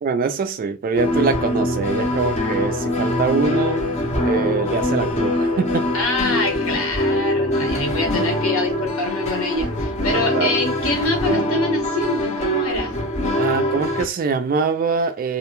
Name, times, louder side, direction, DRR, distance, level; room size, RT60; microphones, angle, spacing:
voice 1, 0.0-3.8 4.2-5.9 10.1-10.6 13.4-15.4, right 5 dB, 40° right, 0.3 m, -23 dB
sound 1, 1.0-14.1, left 1 dB, 30° left, 0.6 m, -23 dB
voice 2, 5.9-13.0, left 2 dB, 70° left, 1.2 m, -25 dB
2.4 x 2.2 x 2.9 m
head